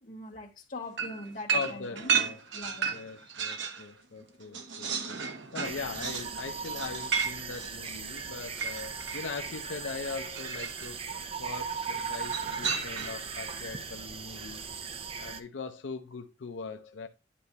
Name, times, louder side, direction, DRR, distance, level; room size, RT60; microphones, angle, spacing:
voice 1, 0.0-2.2 2.5-3.0, left 2 dB, 45° left, 1.7 m, -42 dB
sound 1, 1.0-3.9 4.2-9.3 10.3-10.9 12.2-13.3, right 6 dB, 85° right, 1.0 m, -33 dB
voice 2, 1.5-2.4 2.9-14.7 15.2-17.1, left 4 dB, 90° left, 0.6 m, -40 dB
sound 2, 5.6-15.4, right 5 dB, 30° right, 0.6 m, -38 dB
10.0 x 5.3 x 2.9 m
head